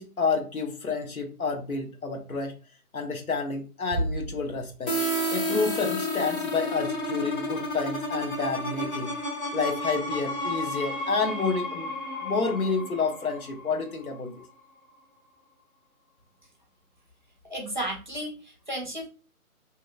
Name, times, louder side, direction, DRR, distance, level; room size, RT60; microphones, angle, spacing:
voice 1, 0.0-2.5 2.9-4.9 5.3-9.1 9.5-11.9 12.2-14.3, left 4 dB, 70° left, 3 dB, 0.9 m, -29 dB
Bass drum, 3.9-5.3, right 1 dB, 15° right, 1.1 m, -33 dB
sound 1, 4.9-14.4, left 1 dB, 35° left, 1.1 m, -31 dB
voice 2, 17.5-19.1, right 1 dB, 35° right, 1 dB, 0.5 m, -33 dB
2.8 x 2.5 x 2.3 m, 0.35 s
figure-of-eight pair, 145°, 45 cm